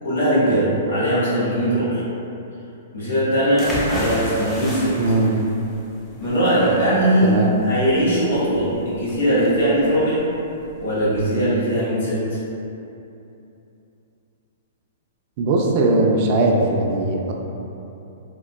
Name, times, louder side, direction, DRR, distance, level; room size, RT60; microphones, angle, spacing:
voice 1, 0.0-2.0 2.9-4.9 6.2-7.3 7.6-10.2 10.8-12.4, equal, 75° left, -10 dB, 1.3 m, -20 dB
sound 1, 3.6-11.2, equal, 10° left, 0.5 m, -32 dB
voice 2, 5.0-5.4 7.2-7.5 15.4-17.3, right 2 dB, 45° right, 0 dB, 0.3 m, -19 dB
3.6 x 2.2 x 2.2 m, 2.8 s
hypercardioid pair, 135°, 0 cm